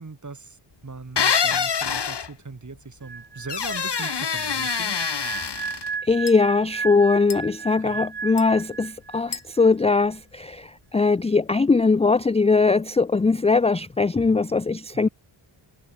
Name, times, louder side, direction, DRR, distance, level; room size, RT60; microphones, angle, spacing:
voice 1, 0.0-5.0 7.8-8.1 14.9-15.1, right 3 dB, 40° right, 4.3 m, -40 dB
sound 1, 1.2-2.3 3.5-5.9, left 6 dB, 60° left, 1.8 m, -25 dB
sound 2, 3.0-9.4 9.6-9.9, right 5 dB, 55° right, 2.7 m, -35 dB
sound 3, 3.2-11.0, left 7 dB, 85° left, 3.5 m, -46 dB
voice 2, 6.0-15.1, left 4 dB, 15° left, 0.3 m, -20 dB
wide cardioid pair, 95°, 47 cm